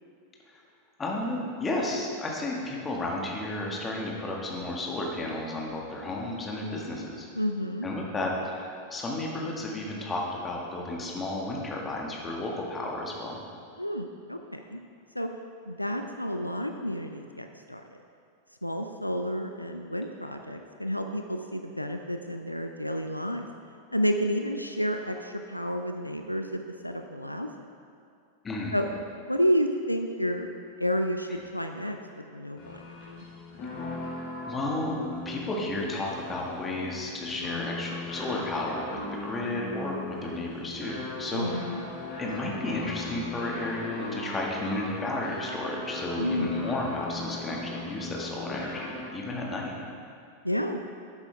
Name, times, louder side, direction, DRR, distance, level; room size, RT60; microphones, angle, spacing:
voice 1, 1.0-7.3 7.8-13.4 28.4-28.8 34.4-34.9 35.2-41.5 42.2-49.7, left 2 dB, 20° left, -2 dB, 1.7 m, -32 dB
voice 2, 7.4-7.9 13.8-14.8 15.1-15.3 15.7-17.8 18.6-23.5 23.9-27.5 28.7-28.9 29.3-30.5 30.8-32.8 33.1-33.2 41.3-41.8 46.1-46.6 50.4-50.8, equal, 90° left, 5 dB, 0.4 m, -30 dB
sound 1, 32.6-49.3, left 2 dB, 45° left, 2.6 m, -39 dB
11.5 x 8.0 x 3.4 m, 2.4 s
figure-of-eight pair, 90°, 0 cm